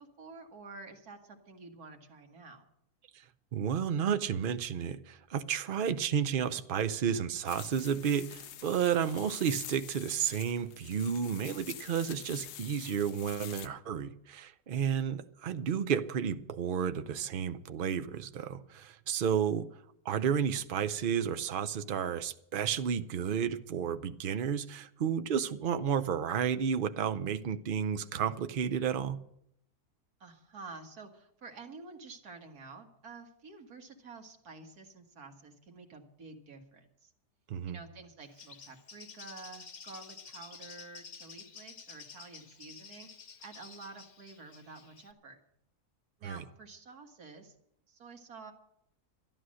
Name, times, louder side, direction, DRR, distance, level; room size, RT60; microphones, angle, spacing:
voice 1, 0.0-2.7 14.7-15.2 30.2-37.1 37.7-45.4 46.2-47.6 47.9-48.5, right 3 dB, 70° right, 2.1 m, -50 dB
voice 2, 3.5-19.7 20.0-29.2 37.5-37.8 46.2-46.4, right 8 dB, 50° right, 0.6 m, -32 dB
sound 1, 7.5-13.7, left 11 dB, 90° left, 1.2 m, -47 dB
Bird, 38.2-45.1, left 6 dB, 60° left, 0.4 m, -51 dB
12.5 x 11.0 x 6.3 m
omnidirectional pair, 1.6 m